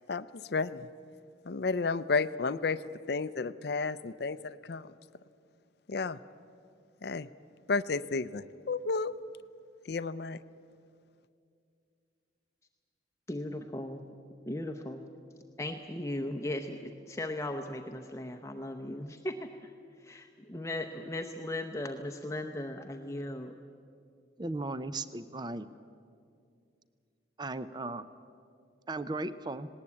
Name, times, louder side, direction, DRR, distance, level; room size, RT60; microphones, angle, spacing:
voice 1, 0.1-0.9 1.5-2.8 3.1-4.9 5.9-6.2 7.0-7.3 7.7-9.1 9.9-10.4, left 4 dB, 55° left, 13 dB, 0.5 m, -32 dB
voice 2, 13.3-14.0 14.5-15.0 15.6-19.7 20.0-23.5, left 1 dB, 15° left, 4 dB, 0.7 m, -37 dB
voice 3, 24.4-25.7 27.4-28.1 28.9-29.7, right 2 dB, 20° right, 13 dB, 0.5 m, -36 dB
19.0 x 18.5 x 8.6 m, 2.4 s
head